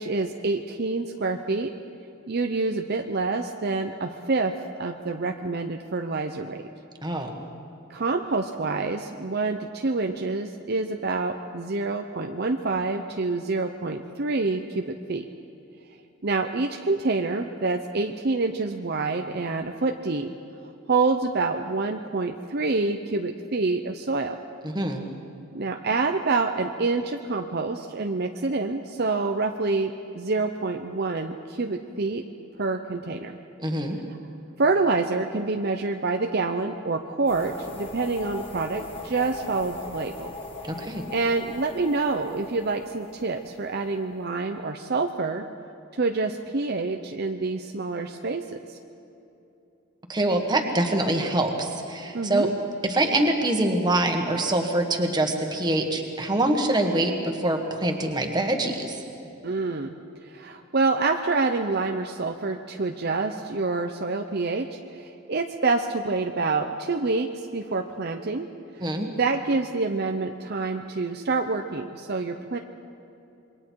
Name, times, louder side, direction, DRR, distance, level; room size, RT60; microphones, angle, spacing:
voice 1, 0.0-1.7 2.3-4.5 4.8-6.7 7.9-15.3 16.2-20.3 20.9-24.4 25.5-32.2 32.6-33.4 34.6-40.3 40.8-45.4 45.9-48.8 52.1-52.5 59.4-59.9 60.2-68.5 68.8-72.6, right 3 dB, 50° right, 5 dB, 0.7 m, -27 dB
voice 2, 7.0-7.4 24.6-25.0 33.6-34.0 40.7-41.0 50.1-52.5 52.8-59.0 68.8-69.1, right 1 dB, 20° right, 3 dB, 1.7 m, -24 dB
sound 1, 37.3-44.1, left 3 dB, 25° left, 2.2 m, -40 dB
27.0 x 22.5 x 4.7 m, 2.8 s
head